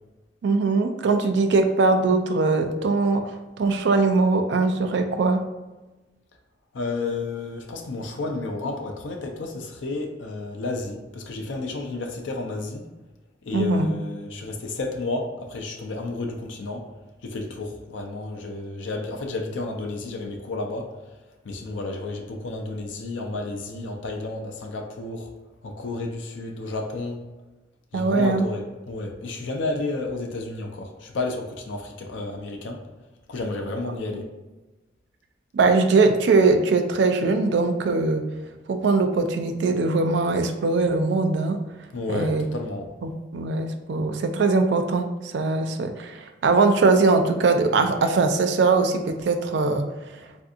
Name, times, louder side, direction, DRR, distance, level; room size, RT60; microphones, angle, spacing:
voice 1, 0.4-5.4 13.5-13.9 27.9-28.4 35.5-38.2 38.7-41.6 42.1-42.4 43.0-49.9, right 3 dB, 70° right, 7 dB, 0.4 m, -21 dB
voice 2, 6.7-12.9 13.4-16.9 17.2-20.9 21.4-25.3 25.6-27.2 27.9-32.9 33.3-34.3 41.9-42.9, left 2 dB, 90° left, 2 dB, 0.5 m, -31 dB
3.5 x 2.6 x 2.4 m, 1.1 s
head